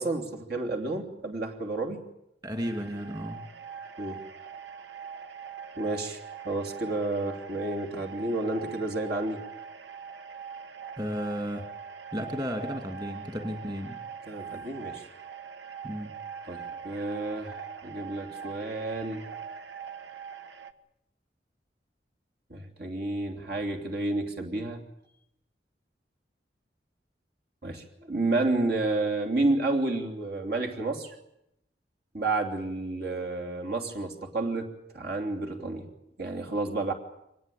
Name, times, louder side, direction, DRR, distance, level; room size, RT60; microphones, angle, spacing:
voice 1, 0.0-2.0 4.0-4.2 5.7-9.4 14.3-15.1 16.5-19.2 22.5-24.8 27.6-31.1 32.1-35.9 36.2-36.9, right 2 dB, 60° right, 2 dB, 3.2 m, -30 dB
voice 2, 2.4-3.4 11.0-11.7 12.1-14.0 15.8-16.1, equal, 25° right, 4 dB, 3.0 m, -33 dB
sound 1, 2.6-20.7, right 7 dB, 80° right, 1.3 m, -42 dB
24.5 x 20.5 x 8.7 m, 0.81 s
head